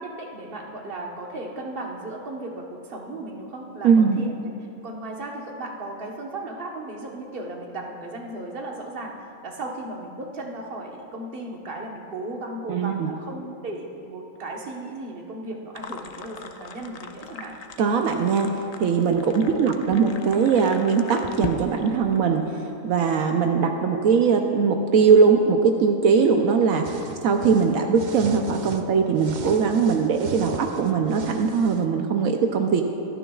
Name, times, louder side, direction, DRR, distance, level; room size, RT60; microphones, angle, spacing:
voice 1, 0.0-4.3 4.8-17.6 19.2-19.7 27.8-27.9, right 2 dB, 45° right, 0 dB, 1.4 m, -36 dB
voice 2, 3.8-4.2 12.7-13.1 17.8-26.9 27.2-32.8, right 5 dB, 80° right, 3 dB, 1.1 m, -20 dB
sound 1, 15.7-22.2, left 4 dB, 85° left, 0.3 m, -38 dB
sound 2, 26.8-28.9 29.2-31.9, right 5 dB, 60° right, 0.5 m, -38 dB
25.5 x 9.9 x 2.4 m, 2.6 s
omnidirectional pair, 1.5 m